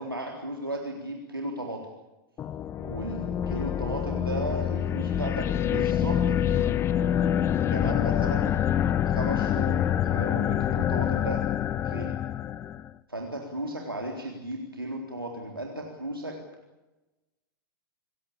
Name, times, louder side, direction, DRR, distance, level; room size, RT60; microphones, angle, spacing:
voice 1, 0.0-1.8 2.9-6.7 7.7-8.6 9.0-11.4 11.8-12.1 13.1-16.3, right 1 dB, 85° right, 1 dB, 3.8 m, -35 dB
sound 1, 2.4-12.9, left 10 dB, 20° left, 0.8 m, -26 dB
28.0 x 16.5 x 8.7 m, 1.1 s
figure-of-eight pair, 100°, 12 cm